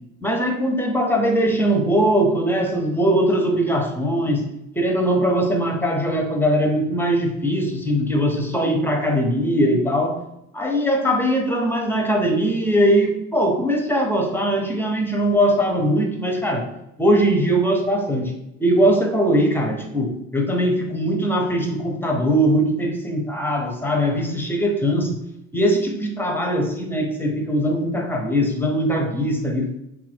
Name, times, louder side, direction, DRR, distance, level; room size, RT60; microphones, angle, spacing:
voice 1, 0.2-4.5 4.7-10.2 10.5-16.7 17.0-18.3 18.6-25.2 25.5-29.7, equal, 5° left, 2 dB, 0.7 m, -21 dB
3.1 x 2.5 x 3.5 m, 0.84 s
cardioid pair, 90°, 30 cm